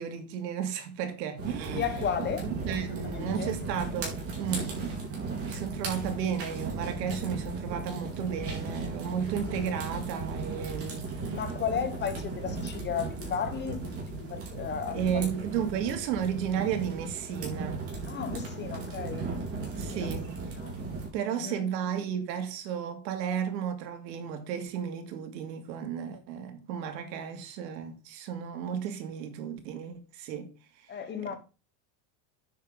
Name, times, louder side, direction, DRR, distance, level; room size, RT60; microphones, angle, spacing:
voice 1, 0.0-1.8 2.6-5.0 5.4-11.4 14.9-17.9 19.8-20.4 21.1-30.5 30.8-30.9, right 8 dB, 85° right, 2.6 m, -33 dB
sound 1, 1.4-21.1, right 3 dB, 30° right, 4.1 m, -36 dB
voice 2, 1.7-2.5 3.1-3.5 11.3-15.3 18.1-19.3 19.9-20.1 20.6-20.7 21.4-21.6 30.9-31.4, left 7 dB, 20° left, 1.1 m, -34 dB
9.8 x 7.4 x 3.8 m
supercardioid pair, 160°, 49 cm